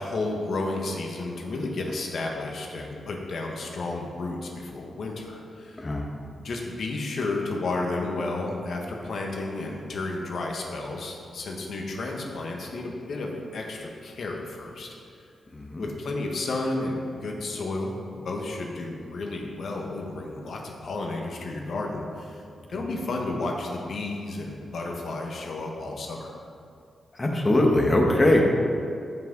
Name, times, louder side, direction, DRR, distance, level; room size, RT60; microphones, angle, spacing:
voice 1, 0.0-5.9 6.4-14.9 15.8-22.4 22.7-26.3, left 2 dB, 65° left, 0 dB, 1.4 m, -32 dB
voice 2, 15.5-15.9 27.1-28.4, left 1 dB, 25° left, 0 dB, 1.5 m, -21 dB
14.5 x 5.9 x 3.9 m, 2.4 s
wide cardioid pair, 105°, 0 cm